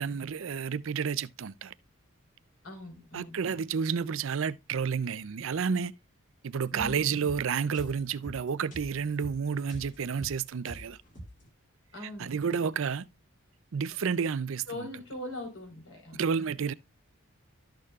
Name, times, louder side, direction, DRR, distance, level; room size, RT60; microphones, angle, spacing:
voice 1, 0.0-1.7 3.1-5.9 6.4-11.0 12.2-13.1 13.7-14.9 16.2-16.7, right 6 dB, 65° right, 0.4 m, -30 dB
voice 2, 2.6-3.4 6.7-7.0 11.9-12.4 14.7-16.2, left 1 dB, 65° left, 4.6 m, -41 dB
sound 1, 6.8-11.5, equal, 35° left, 2.6 m, -46 dB
13.0 x 6.6 x 2.4 m
head